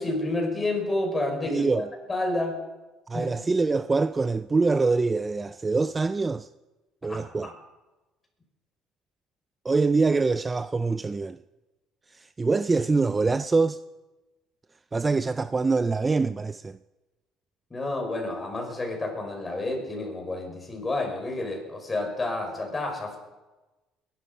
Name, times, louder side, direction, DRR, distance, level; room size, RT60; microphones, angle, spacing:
voice 1, 0.0-2.6 3.1-3.3 7.0-7.5 17.7-23.2, left 2 dB, 20° left, 5.7 m, -30 dB
voice 2, 1.5-1.9 3.1-6.5 7.0-7.5 9.6-11.4 12.1-13.8 14.9-16.8, right 3 dB, 20° right, 0.4 m, -24 dB
21.5 x 12.0 x 5.6 m
cardioid pair, 100°, 0 cm